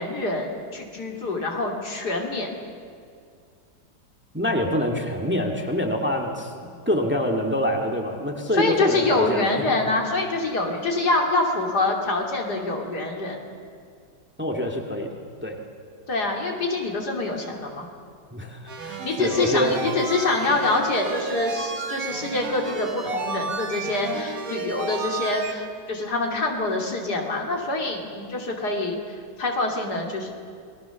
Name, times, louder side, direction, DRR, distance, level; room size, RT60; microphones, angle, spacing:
voice 1, 0.0-2.5 8.6-13.4 16.1-17.9 18.8-29.0 29.4-30.3, left 2 dB, 60° left, 1 dB, 3.3 m, -25 dB
voice 2, 4.3-6.5 6.9-9.5 14.4-15.1 15.4-15.6 18.3-19.9, equal, 5° right, 2 dB, 2.0 m, -25 dB
sound 1, 18.7-25.5, right 4 dB, 50° right, 2.1 m, -32 dB
28.0 x 20.0 x 7.1 m, 2.3 s
omnidirectional pair, 1.9 m